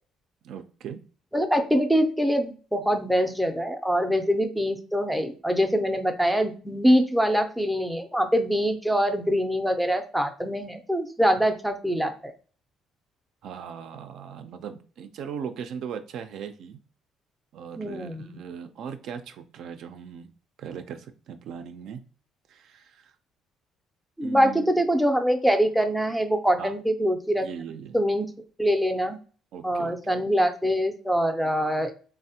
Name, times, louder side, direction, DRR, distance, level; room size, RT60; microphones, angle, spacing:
voice 1, 0.4-1.0 13.4-16.8 17.5-20.3 20.6-22.0 22.5-23.1 24.2-24.9 26.6-26.7 27.4-28.0 29.5-30.2, right 7 dB, 65° right, 8 dB, 0.3 m, -39 dB
voice 2, 1.3-12.3 17.8-18.3 24.2-27.5 27.9-28.3 28.6-29.2 29.6-31.9, equal, ahead, 5 dB, 0.4 m, -24 dB
3.2 x 2.0 x 2.7 m, 0.39 s
cardioid pair, 125°, 0 cm